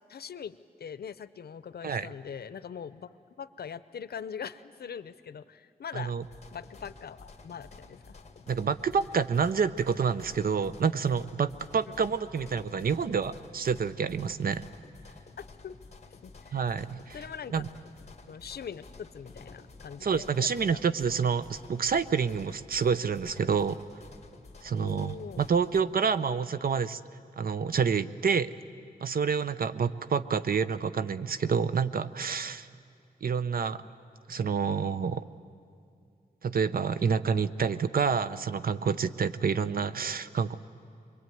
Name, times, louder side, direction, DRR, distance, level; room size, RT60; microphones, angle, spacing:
voice 1, 0.1-6.1 6.5-8.1 12.4-12.5 15.6-15.8 16.2-16.6 17.1-17.6 18.3-20.8 24.8-25.5, left 7 dB, 90° left, 15 dB, 0.7 m, -42 dB
voice 2, 5.9-6.2 8.5-14.7 16.5-17.2 17.5-17.7 20.0-23.8 24.6-27.0 27.4-28.5 29.0-32.7 33.2-33.8 34.3-35.2 36.4-40.5, right 6 dB, 70° right, 13 dB, 0.7 m, -28 dB
sound 1, 6.2-25.8, left 3 dB, 45° left, 1.8 m, -51 dB
24.5 x 22.5 x 9.2 m, 2.4 s
wide cardioid pair, 140°, 16 cm